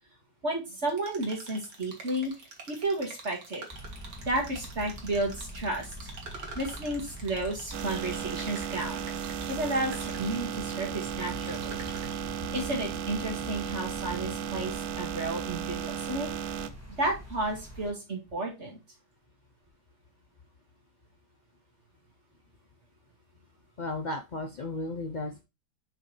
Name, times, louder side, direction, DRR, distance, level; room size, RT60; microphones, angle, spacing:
voice 1, 0.4-2.3 2.7-3.7 4.3-6.1 6.6-9.0 9.5-11.8 12.5-16.4 17.0-18.8, right 2 dB, 40° right, 0 dB, 2.3 m, -32 dB
sound 1, 0.9-12.1, right 3 dB, 90° right, 2.2 m, -46 dB
sound 2, 3.7-17.9, equal, 10° right, 1.6 m, -44 dB
sound 3, 7.7-16.7, right 9 dB, 70° right, 1.1 m, -35 dB
voice 2, 23.8-25.4, left 2 dB, 65° left, 4 dB, 0.4 m, -34 dB
6.0 x 5.2 x 3.2 m, 0.25 s
omnidirectional pair, 1.8 m